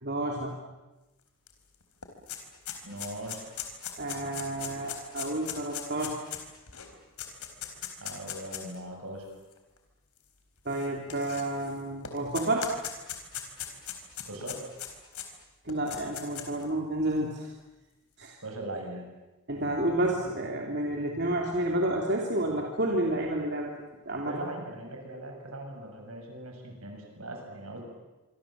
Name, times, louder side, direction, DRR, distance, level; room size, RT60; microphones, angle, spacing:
voice 1, 0.0-0.5 4.0-6.2 10.6-12.7 15.6-17.5 18.2-18.3 19.5-23.7 24.0-24.3, right 1 dB, 50° right, 0 dB, 3.0 m, -30 dB
sound 1, 1.5-1.6 1.8-8.7 9.5-9.6 10.7-11.7 12.0-15.3 15.7-16.6, left 10 dB, 85° left, 4.1 m, -39 dB
voice 2, 2.8-3.6 8.0-9.3 14.3-14.7 18.4-19.1 24.2-27.8, right 1 dB, 75° right, 2 dB, 7.1 m, -40 dB
25.5 x 25.0 x 7.6 m, 1.1 s
head